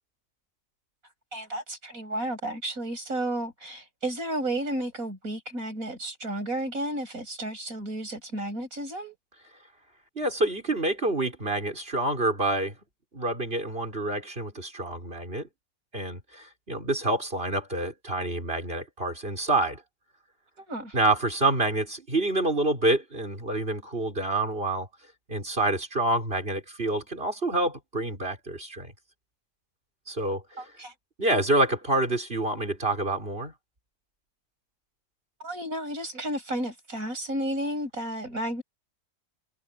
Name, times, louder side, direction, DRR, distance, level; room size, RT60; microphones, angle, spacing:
voice 1, 1.3-9.2 20.6-21.0 30.6-30.9 35.4-38.6, right 1 dB, 65° right, 7.9 m, -32 dB
voice 2, 10.1-12.7 13.1-15.5 15.9-19.8 20.9-24.9 25.3-28.9 30.1-30.6 31.2-33.5, right 2 dB, 35° right, 5.0 m, -27 dB
omnidirectional pair, 1.6 m